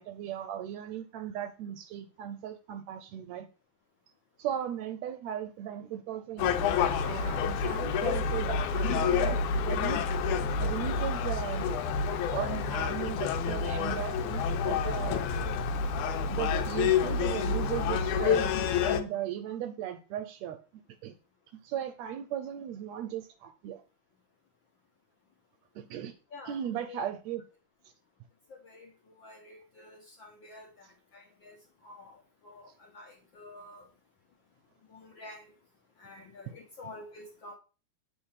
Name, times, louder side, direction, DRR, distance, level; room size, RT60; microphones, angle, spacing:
voice 1, 0.0-3.5 4.4-9.4 9.7-10.0 10.6-11.8 12.3-15.2 16.0-20.6 21.0-21.1 21.6-23.8 25.7-26.1 26.5-27.4, right 10 dB, 80° right, 1.7 m, -37 dB
Gull seagull, 6.4-19.0, left 6 dB, 80° left, 2.1 m, -28 dB
voice 2, 26.3-27.0 28.5-31.6 31.8-33.9 34.9-35.5 36.0-37.6, left 2 dB, 55° left, 1.4 m, -49 dB
7.5 x 4.3 x 5.7 m
omnidirectional pair, 3.4 m